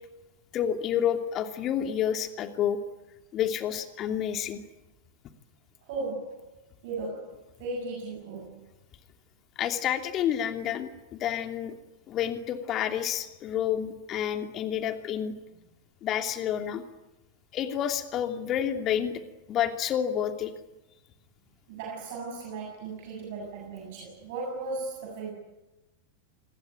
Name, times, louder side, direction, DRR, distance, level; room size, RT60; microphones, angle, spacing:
voice 1, 0.5-2.8 3.3-4.6 9.6-11.7 12.1-15.3 16.0-16.8 17.5-19.2 19.5-20.5, left 9 dB, 35° left, 2.8 m, -29 dB
voice 2, 5.9-6.5 6.8-8.7 21.7-25.3, right 3 dB, 50° right, 7.2 m, -36 dB
27.5 x 21.5 x 9.4 m
figure-of-eight pair, 90°, 0 cm